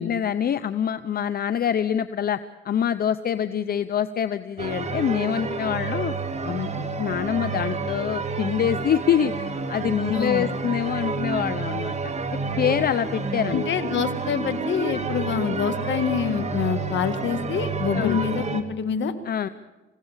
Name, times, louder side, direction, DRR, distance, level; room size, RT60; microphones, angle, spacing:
voice 1, 0.0-2.4 2.6-6.1 6.4-12.1 12.6-13.7 17.9-18.2 19.2-19.5, left 9 dB, 50° left, 13 dB, 0.7 m, -25 dB
sound 1, 4.6-18.6, right 4 dB, 35° right, 2.1 m, -29 dB
voice 2, 10.1-10.5 13.5-19.1, left 7 dB, 65° left, 9 dB, 1.9 m, -26 dB
26.5 x 16.5 x 7.3 m, 1.2 s
cardioid pair, 90°, 20 cm